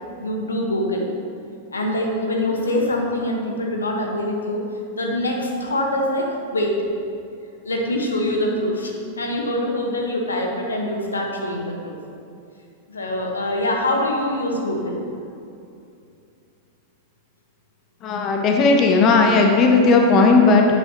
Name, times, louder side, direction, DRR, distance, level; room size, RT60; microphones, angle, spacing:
voice 1, 0.2-1.1 1.7-4.6 5.0-6.8 7.6-12.0 12.9-15.0, left 1 dB, 75° left, 0 dB, 1.1 m, -24 dB
voice 2, 18.0-20.7, left 3 dB, 35° left, 2 dB, 0.9 m, -15 dB
9.8 x 8.1 x 3.0 m, 2.6 s
figure-of-eight pair, 95°, 0 cm